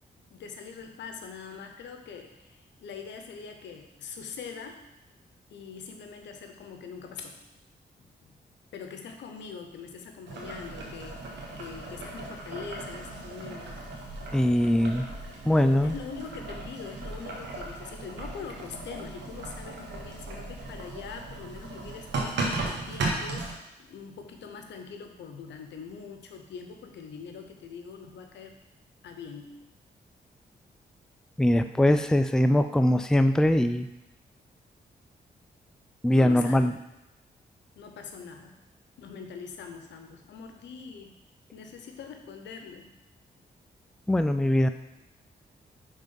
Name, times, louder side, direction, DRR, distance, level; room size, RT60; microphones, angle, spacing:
voice 1, 0.3-4.8 5.5-7.4 8.0-8.3 8.7-13.8 15.8-23.5 23.8-28.6 29.0-29.6 36.2-36.7 37.8-38.6 39.0-41.2 41.5-42.9, left 5 dB, 85° left, 5 dB, 0.7 m, -43 dB
Boiling, 10.3-23.5, right 2 dB, 85° right, 1.2 m, -36 dB
voice 2, 14.3-15.1 15.5-15.9 31.4-33.9 36.0-36.7 44.1-44.7, left 1 dB, 5° left, 9 dB, 0.4 m, -22 dB
5.5 x 3.6 x 5.4 m, 0.94 s
cardioid pair, 55°, 18 cm